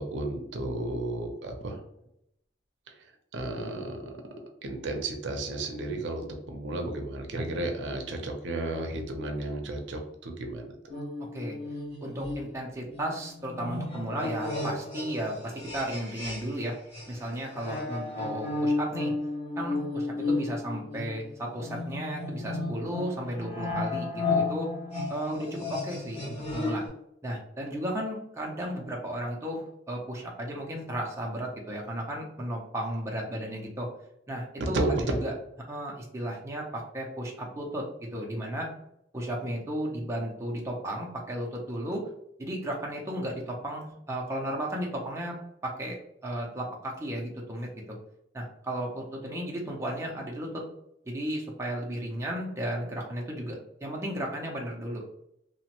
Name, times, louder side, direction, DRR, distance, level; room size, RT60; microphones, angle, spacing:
voice 1, 0.0-1.8 3.3-4.1 4.6-10.7 34.6-35.2, right 2 dB, 75° right, 3 dB, 0.5 m, -32 dB
sound 1, 10.9-16.6 16.9-26.9, left 2 dB, 35° left, 1.3 m, -33 dB
voice 2, 12.0-16.8 17.1-19.1 19.6-24.7 25.1-26.8 27.2-33.9 34.3-35.3 35.7-37.9 38.1-38.7 39.1-42.1 42.4-45.4 45.6-46.0 46.2-48.0 48.3-50.6 51.1-55.1, right 1 dB, 15° right, -2 dB, 0.5 m, -34 dB
2.9 x 2.1 x 2.9 m, 0.78 s
head